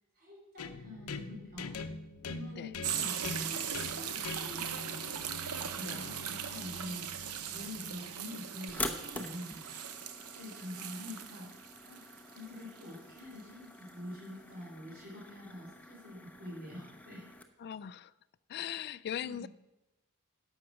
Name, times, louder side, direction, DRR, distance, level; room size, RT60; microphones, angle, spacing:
voice 1, 0.2-1.7 2.2-5.0 5.7-7.1 7.5-9.6 10.3-11.5 11.8-12.0 12.3-17.2 19.2-19.5, left 1 dB, 45° right, 4.0 m, -46 dB
sound 1, 0.6-8.4, left 3 dB, 80° left, 0.7 m, -44 dB
sound 2, 2.8-13.4 13.9-14.0, right 8 dB, 80° right, 0.8 m, -39 dB
voice 2, 5.8-6.4 17.6-18.1 18.5-19.5, left 9 dB, 50° left, 0.3 m, -40 dB
sound 3, 8.7-17.4, left 2 dB, 5° left, 0.8 m, -45 dB
11.0 x 7.2 x 5.9 m
head